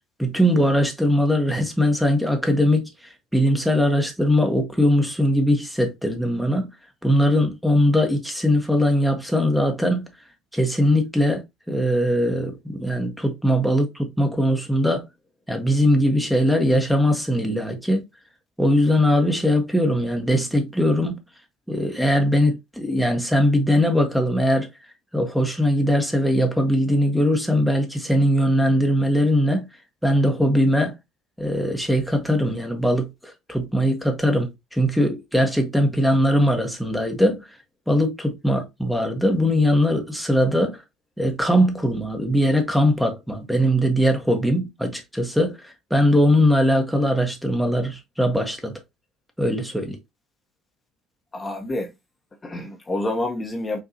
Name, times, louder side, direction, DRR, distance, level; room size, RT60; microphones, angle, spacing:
voice 1, 0.2-6.7 7.0-10.0 10.5-11.4 11.7-15.0 15.5-18.0 18.6-21.2 21.7-24.7 25.1-29.7 30.0-31.0 31.4-37.6 37.9-40.8 41.2-48.8 49.4-50.0, equal, ahead, 1.0 m, -21 dB
voice 2, 51.3-51.9 52.4-53.8, left 1 dB, 25° left, 1.0 m, -28 dB
5.0 x 2.6 x 2.7 m
hypercardioid pair, 60°, 0 cm